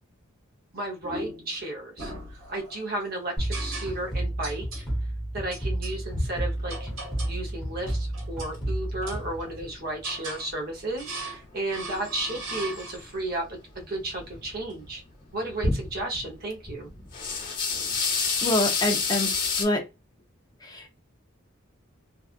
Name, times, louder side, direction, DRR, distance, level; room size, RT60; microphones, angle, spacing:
voice 1, 0.7-4.8 5.3-6.9 7.2-15.0 15.3-16.9, right 2 dB, 50° right, 1 dB, 0.8 m, -33 dB
sound 1, 1.0-1.6 2.0-2.9 3.5-4.2 4.4-4.9 5.5-6.0 6.7-7.4 7.8-8.6 9.0-9.6 10.0-10.5 11.0-11.4 11.7-13.2, right 2 dB, 70° right, 1.2 m, -39 dB
sound 2, 3.4-10.0, right 1 dB, 5° left, 1.0 m, -32 dB
sound 3, 6.1-9.8 10.1-11.2 11.4-11.5 11.9-13.3 13.7-14.9 15.3-16.3 16.6-19.6, left 4 dB, 40° left, 1.0 m, -30 dB
voice 2, 18.4-19.8 20.6-20.9, left 1 dB, 20° left, 1 dB, 0.6 m, -26 dB
2.6 x 2.4 x 2.4 m, 0.26 s
head